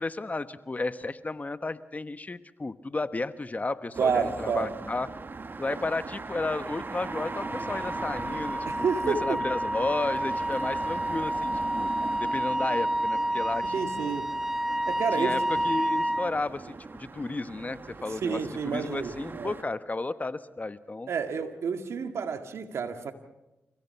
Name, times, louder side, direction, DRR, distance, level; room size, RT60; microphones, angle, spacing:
voice 1, 0.0-5.1 5.6-11.9 12.2-13.6 13.9-14.1 15.1-21.1, left 3 dB, 35° left, 12 dB, 1.2 m, -33 dB
sound 1, 3.9-19.6, right 4 dB, 45° right, 1.4 m, -40 dB
voice 2, 4.0-4.7 5.7-5.8 8.7-9.4 13.6-14.3 14.9-15.5 18.1-19.5 21.1-23.1, right 6 dB, 75° right, 7 dB, 2.0 m, -30 dB
Wind instrument woodwind instrument, 6.9-16.3, right 1 dB, 5° right, 0.8 m, -30 dB
29.5 x 16.5 x 5.9 m, 0.95 s
supercardioid pair, 45°, 5 cm